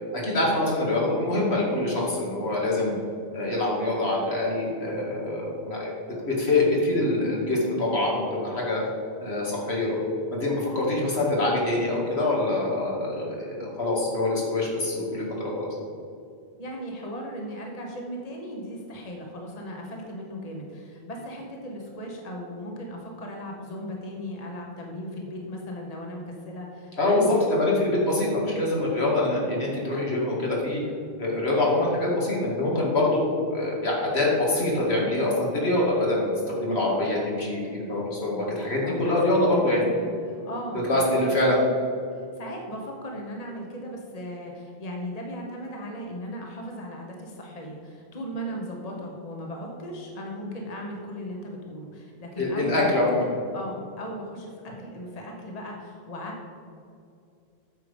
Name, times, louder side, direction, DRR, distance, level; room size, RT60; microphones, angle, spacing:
voice 1, 0.1-2.9 3.3-5.9 6.3-8.8 9.2-10.0 10.3-15.7 27.0-30.8 31.2-36.3 36.5-39.9 40.9-41.6 52.4-53.3, left 2 dB, 80° left, -4 dB, 2.5 m, -25 dB
voice 2, 16.6-27.5 38.8-41.3 42.2-53.1 53.5-56.5, equal, 40° left, 0 dB, 1.3 m, -37 dB
9.0 x 6.8 x 5.2 m, 2.5 s
omnidirectional pair, 1.1 m